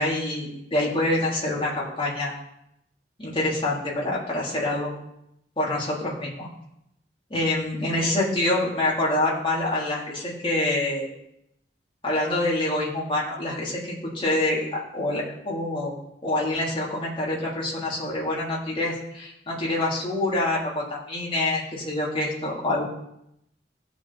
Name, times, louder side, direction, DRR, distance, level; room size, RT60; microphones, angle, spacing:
voice 1, 0.0-2.3 3.2-4.9 5.6-6.5 7.3-11.1 12.0-15.9 16.2-22.8, left 1 dB, 30° left, -6 dB, 3.5 m, -26 dB
17.0 x 6.2 x 4.3 m, 0.79 s
head